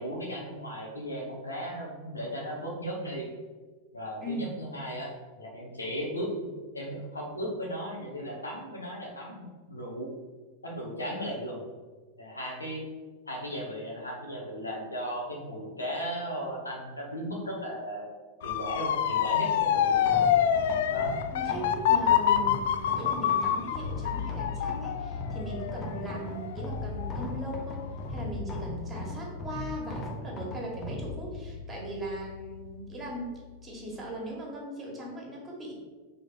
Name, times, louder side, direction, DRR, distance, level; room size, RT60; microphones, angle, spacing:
voice 1, 0.0-3.3 3.9-6.5 6.7-10.1 10.6-11.6 12.2-12.8 13.2-18.1 18.4-20.2 20.9-21.1, equal, 80° left, -2 dB, 1.4 m, -36 dB
Motor vehicle (road) / Siren, 18.4-27.3 27.8-28.2, left 9 dB, 55° left, 0.3 m, -26 dB
sound 1, 19.9-34.2, left 3 dB, 25° left, 0.9 m, -38 dB
voice 2, 21.3-33.3 33.6-35.7, right 1 dB, 15° right, -2 dB, 1.8 m, -39 dB
4.9 x 3.6 x 5.5 m, 1.4 s
figure-of-eight pair, 90°, 0 cm